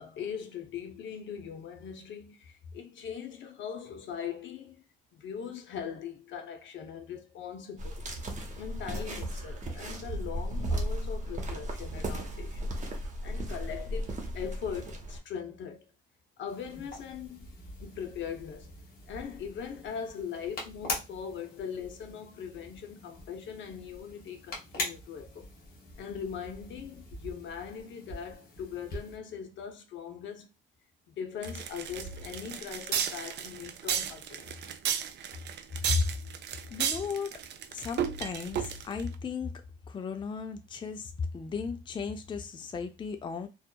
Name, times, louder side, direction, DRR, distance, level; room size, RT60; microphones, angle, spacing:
voice 1, 0.0-4.8 5.1-8.0 8.6-12.7 13.2-15.9 16.4-17.5 17.8-18.7 19.1-25.5 26.0-30.5 31.1-34.5, left 7 dB, 70° left, 0.6 m, -40 dB
sound 1, 7.8-15.2, right 1 dB, 40° right, 0.8 m, -35 dB
sound 2, 16.5-29.2, left 2 dB, 50° left, 1.1 m, -43 dB
sound 3, 31.4-39.1, right 8 dB, 60° right, 0.4 m, -33 dB
voice 2, 36.7-37.4 37.7-39.6 39.9-43.5, left 5 dB, 25° left, 0.4 m, -34 dB
2.7 x 2.3 x 2.2 m
cardioid pair, 90°, 20 cm